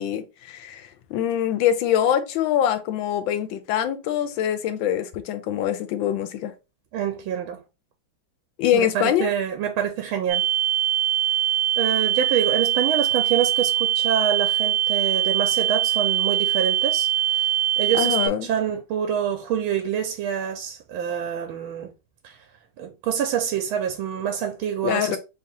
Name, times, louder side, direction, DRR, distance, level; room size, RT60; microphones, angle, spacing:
voice 1, 0.0-6.5 8.6-9.3 17.9-18.5 24.8-25.2, left 10 dB, 80° left, 1.3 m, -24 dB
voice 2, 6.9-7.6 8.7-10.4 11.8-21.9 22.2-22.4 22.8-25.2, right 9 dB, 90° right, 1.5 m, -26 dB
sound 1, 10.3-18.3, right 11 dB, 60° right, 0.7 m, -22 dB
3.5 x 2.7 x 4.1 m
omnidirectional pair, 2.2 m